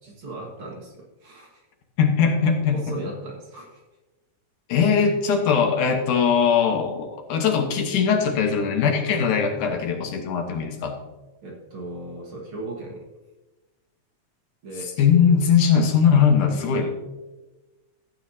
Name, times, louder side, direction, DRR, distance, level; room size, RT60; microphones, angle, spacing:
voice 1, 0.0-1.6 2.7-3.8 11.4-13.1 14.6-14.9 16.1-16.9, right 2 dB, 50° right, -3 dB, 2.2 m, -37 dB
voice 2, 2.0-2.8 4.7-11.0 15.0-16.9, left 6 dB, 80° left, 3 dB, 2.7 m, -20 dB
14.0 x 9.1 x 2.7 m, 1.1 s
omnidirectional pair, 3.5 m